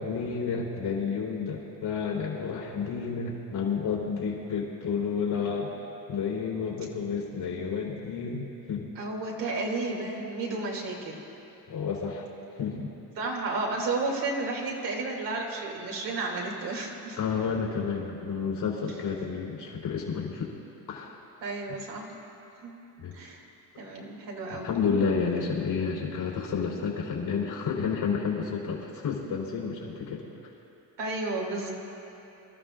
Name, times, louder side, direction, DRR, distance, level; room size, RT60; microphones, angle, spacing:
voice 1, 0.0-5.7 6.1-8.9 11.7-12.3 12.6-12.9 17.2-20.5 20.9-21.2 23.0-23.2 24.5-30.2, left 5 dB, 60° left, -2 dB, 3.5 m, -30 dB
voice 2, 9.0-11.2 13.2-17.2 21.4-22.2 22.6-22.7 23.1-23.4 23.8-24.8 31.0-31.7, right 3 dB, 70° right, -2 dB, 2.8 m, -32 dB
26.5 x 13.5 x 2.5 m, 3.0 s
cardioid pair, 110°, 44 cm